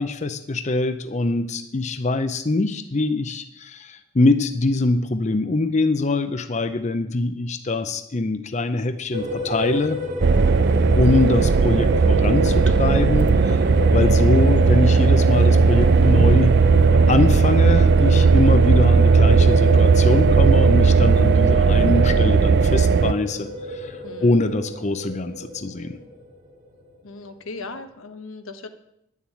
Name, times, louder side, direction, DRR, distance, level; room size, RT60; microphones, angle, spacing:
voice 1, 0.0-10.0 10.9-13.7 13.9-16.6 17.1-26.0, left 2 dB, 35° left, 10 dB, 0.6 m, -23 dB
sound 1, 9.1-26.3, right 1 dB, 40° right, 1.9 m, -29 dB
sound 2, 10.2-23.1, right 4 dB, 55° right, 0.4 m, -16 dB
voice 2, 24.0-24.4 27.0-28.7, left 3 dB, 85° left, 8 dB, 1.2 m, -37 dB
11.0 x 7.2 x 8.5 m, 0.82 s
head